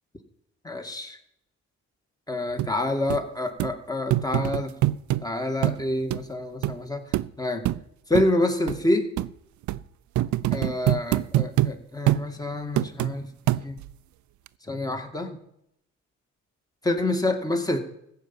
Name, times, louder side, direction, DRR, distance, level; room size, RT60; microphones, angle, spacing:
voice 1, 0.6-1.2 2.3-4.7 5.2-7.0 7.4-7.6 8.1-9.1 10.5-13.3 13.6-13.8 14.7-15.3 16.8-17.8, left 2 dB, 10° left, 5 dB, 2.1 m, -27 dB
sound 1, 2.6-2.7 3.1-3.2 3.6-3.7 4.1-5.2 5.6-5.8 6.1-6.2 6.6-6.8 7.1-7.3 7.7-7.8 8.1-8.3 8.7-8.8 9.2-9.3 9.7-9.8 10.2-11.7 12.1-12.3 12.8-13.1 13.5-13.9 14.5-14.6, right 15 dB, 70° right, 0.5 m, -24 dB
15.0 x 5.8 x 9.1 m, 0.75 s
cardioid pair, 90°, 30 cm